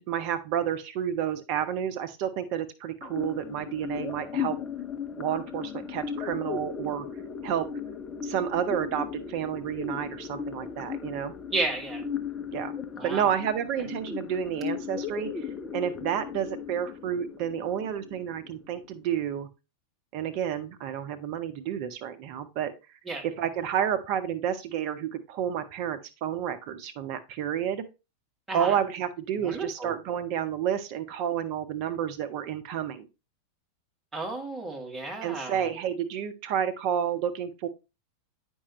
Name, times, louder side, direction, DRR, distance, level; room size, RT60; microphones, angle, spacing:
voice 1, 0.0-4.6 5.2-7.1 7.4-7.7 8.2-11.3 12.5-12.7 13.0-19.5 20.1-22.7 23.2-27.8 28.5-33.1 35.2-37.7, right 9 dB, 45° right, 0.8 m, -30 dB
sound 1, 3.0-19.0, left 6 dB, 20° left, 0.6 m, -37 dB
voice 2, 11.5-12.0 13.0-13.2 23.1-23.2 28.5-28.8 29.4-29.9 34.1-35.7, right 2 dB, 10° right, 1.8 m, -32 dB
8.6 x 5.4 x 3.0 m
figure-of-eight pair, 90°, 0 cm